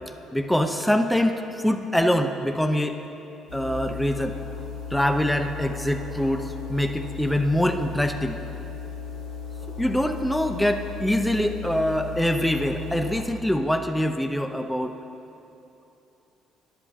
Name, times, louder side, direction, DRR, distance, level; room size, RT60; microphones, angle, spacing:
voice 1, 0.3-3.0 3.5-4.4 4.9-8.4 9.8-14.9, equal, 5° left, 6 dB, 0.6 m, -24 dB
sound 1, 3.5-13.2, left 5 dB, 85° left, 1.4 m, -36 dB
10.5 x 5.9 x 6.8 m, 2.9 s
supercardioid pair, 65°, 0 cm